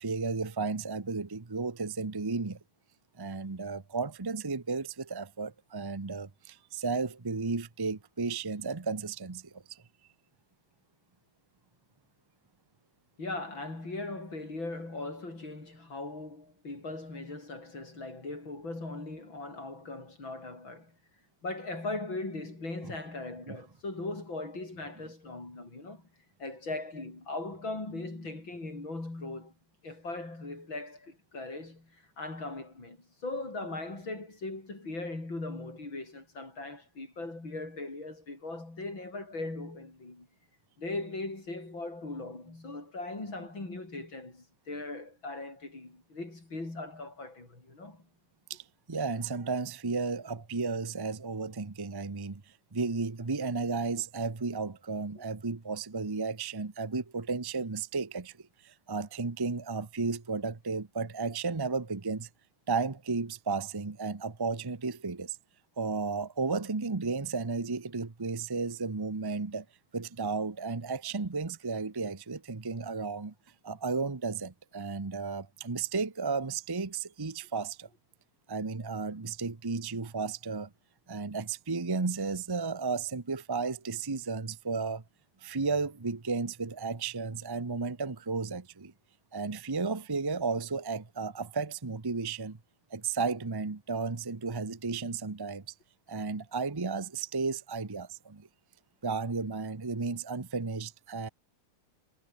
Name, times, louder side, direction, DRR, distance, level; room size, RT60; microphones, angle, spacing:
voice 1, 0.0-2.6 3.2-9.8 22.8-22.9 23.5-23.6 48.5-52.4 52.7-58.3 58.6-62.3 62.7-65.4 65.8-69.6 69.9-73.3 73.6-77.9 78.5-80.7 81.1-85.0 85.4-88.9 89.3-92.6 92.9-95.6 96.1-98.5 99.0-101.3, right 4 dB, 35° right, 0.3 m, -33 dB
voice 2, 13.2-21.0 21.4-26.1 26.4-29.5 29.8-40.3 40.8-48.0 55.1-55.2, left 2 dB, 65° left, 8.3 m, -39 dB
omnidirectional pair, 2.3 m